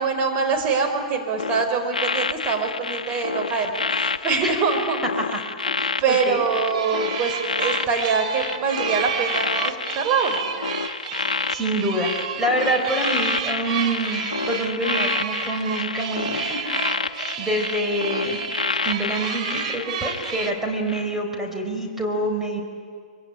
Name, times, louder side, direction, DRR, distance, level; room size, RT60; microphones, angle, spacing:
voice 1, 0.0-5.0 6.0-10.4, right 5 dB, 35° right, 4 dB, 5.4 m, -24 dB
sound 1, 1.4-20.5 20.9-21.2, left 4 dB, 85° left, 1.1 m, -29 dB
voice 2, 5.7-6.4 11.1-16.7 17.0-18.4 18.8-22.6, right 1 dB, 5° right, 0 dB, 4.5 m, -26 dB
sound 2, 6.6-20.5, right 7 dB, 60° right, 3.0 m, -31 dB
26.0 x 23.0 x 9.9 m, 2.1 s
hypercardioid pair, 120°, 4 cm